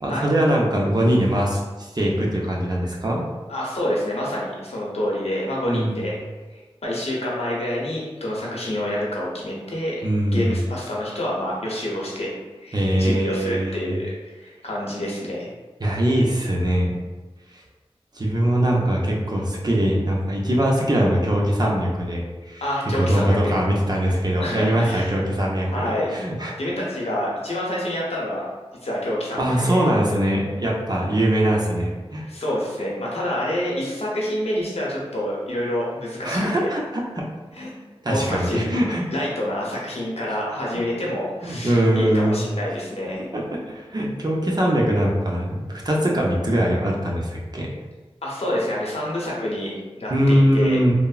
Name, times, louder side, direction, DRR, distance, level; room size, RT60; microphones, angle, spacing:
voice 1, 0.0-3.2 5.7-6.0 10.0-10.6 12.7-13.9 15.8-16.9 17.5-17.6 18.1-22.6 22.9-26.6 29.4-32.3 36.2-37.2 38.0-39.0 40.7-40.8 41.4-42.5 43.3-47.7 50.1-50.9, right 1 dB, 40° right, -2 dB, 0.6 m, -22 dB
voice 2, 3.5-6.1 6.5-10.0 10.3-12.3 12.6-15.5 22.6-23.5 24.4-25.1 25.6-26.1 26.6-28.4 28.8-29.8 32.2-36.7 37.5-37.7 38.1-38.6 39.1-43.2 48.2-49.7 50.0-50.8, left 1 dB, 80° left, -5 dB, 0.8 m, -27 dB
3.4 x 2.0 x 2.4 m, 1.3 s
wide cardioid pair, 45°, 11 cm